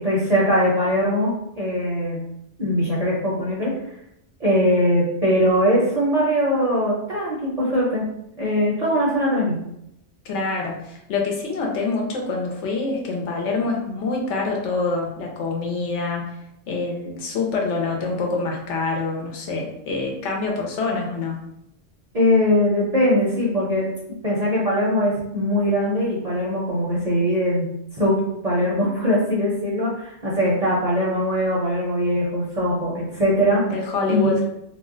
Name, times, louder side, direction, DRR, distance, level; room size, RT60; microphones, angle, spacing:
voice 1, 0.0-2.2 2.6-3.7 4.4-8.0 8.4-9.6 22.1-23.9 24.2-27.7 28.0-28.2 28.4-33.6 34.1-34.3, equal, 45° right, -6 dB, 0.6 m, -21 dB
voice 2, 10.2-16.4 16.7-21.5 33.7-34.4, left 3 dB, 70° left, 0 dB, 0.9 m, -26 dB
2.4 x 2.1 x 3.6 m, 0.79 s
omnidirectional pair, 1.3 m